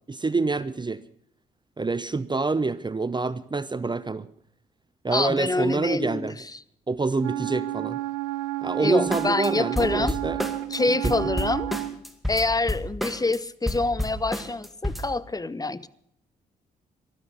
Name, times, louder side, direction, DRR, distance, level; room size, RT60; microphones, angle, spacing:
voice 1, 0.1-1.0 1.8-4.3 5.0-6.3 6.9-8.0 8.6-10.4 11.0-11.1, right 3 dB, 25° right, 17 dB, 0.7 m, -26 dB
voice 2, 5.1-6.6 8.8-10.2 10.7-11.7 12.3-15.9, left 3 dB, 20° left, 17 dB, 0.9 m, -26 dB
Wind instrument woodwind instrument, 7.2-12.0, right 17 dB, 85° right, 0.7 m, -31 dB
sound 1, 9.1-9.5 9.8-10.8 11.0-13.4 13.7-15.1, left 1 dB, ahead, 2.2 m, -30 dB
14.5 x 12.5 x 6.7 m, 0.69 s
hypercardioid pair, 45°, 19 cm